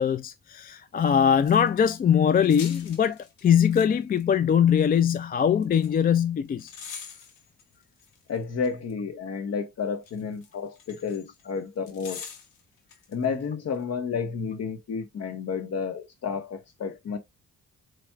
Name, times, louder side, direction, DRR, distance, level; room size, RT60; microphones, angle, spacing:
voice 1, 0.0-6.7, left 8 dB, 30° left, 0.3 m, -22 dB
metal shop hoist chains thick rattle hit metal, 1.4-1.9 2.4-3.9 4.2-4.3 5.6-5.9 6.6-8.9 10.0-11.5 11.9-13.1 13.4-13.5, left 6 dB, 90° left, 1.2 m, -44 dB
voice 2, 8.3-12.3 13.1-17.2, left 6 dB, 55° left, 1.4 m, -31 dB
5.1 x 4.3 x 2.4 m
cardioid pair, 90°, 30 cm